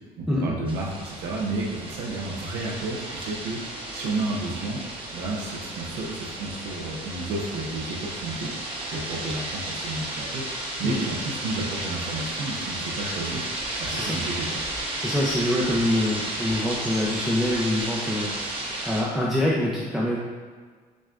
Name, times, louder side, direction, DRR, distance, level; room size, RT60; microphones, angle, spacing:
voice 1, 0.4-4.8 5.1-8.5 8.9-14.5, right 2 dB, 75° right, -3 dB, 0.7 m, -31 dB
sound 1, 0.6-19.0, right 1 dB, 30° right, 0.9 m, -33 dB
voice 2, 15.0-20.2, left 1 dB, ahead, -6 dB, 0.5 m, -25 dB
6.2 x 2.2 x 2.4 m, 1.6 s
cardioid pair, 110°, 17 cm